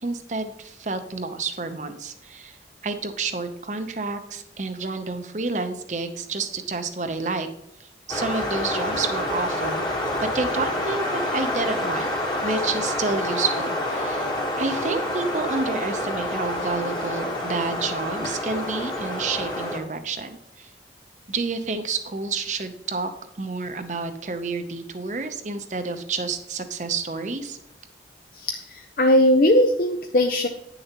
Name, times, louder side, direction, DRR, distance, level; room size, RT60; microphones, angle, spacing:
voice 1, 0.0-2.6 2.8-7.5 7.8-9.8 10.2-12.1 12.4-20.7 21.3-23.1 23.4-27.6, right 3 dB, 45° right, 8 dB, 0.7 m, -29 dB
sound 1, 8.1-19.8, left 1 dB, 25° left, 1.3 m, -28 dB
voice 2, 28.4-30.5, left 1 dB, 50° left, 4 dB, 0.5 m, -19 dB
9.4 x 6.7 x 2.9 m, 0.81 s
head